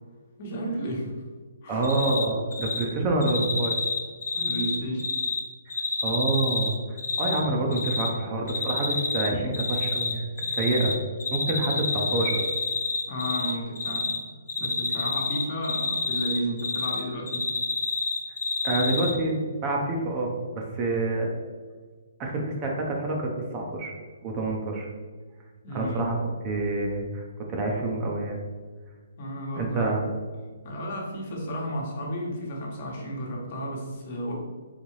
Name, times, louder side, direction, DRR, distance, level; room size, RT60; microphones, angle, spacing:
voice 1, 0.4-1.2 1.6-1.8 4.3-5.2 13.1-14.2 14.6-17.5 25.6-26.1 29.2-29.9 30.6-34.3, equal, 40° left, -2 dB, 1.1 m, -32 dB
voice 2, 1.7-3.7 6.0-6.8 7.2-10.2 10.5-11.0 11.3-12.4 18.6-21.3 22.2-23.9 24.2-24.9 25.7-26.2 26.4-28.4 29.6-30.0, right 2 dB, 25° right, 0 dB, 0.6 m, -27 dB
Cricket, 1.8-2.2 2.5-2.8 3.2-5.4 5.7-7.4 7.7-8.1 8.5-9.3 9.5-10.9 11.2-13.5 13.8-14.2 14.5-17.0 17.3-19.1, left 4 dB, 80° left, 1.0 m, -28 dB
4.0 x 3.4 x 3.1 m, 1.5 s
hypercardioid pair, 160°, 0 cm